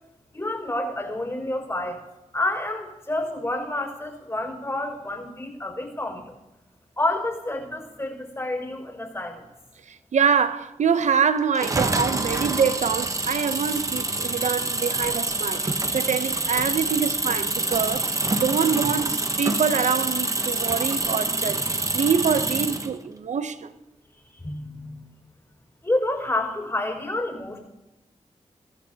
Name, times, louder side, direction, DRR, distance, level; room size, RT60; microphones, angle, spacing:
voice 1, 0.3-2.0 2.3-6.4 7.0-9.4 24.4-25.0 25.8-27.6, left 1 dB, 25° left, 4.9 m, -29 dB
voice 2, 9.9-21.6 21.9-23.7, right 6 dB, 75° right, 0.7 m, -25 dB
sound 1, 11.5-22.9, right 2 dB, 25° right, 0.9 m, -26 dB
22.0 x 14.5 x 2.8 m
cardioid pair, 75°, 12 cm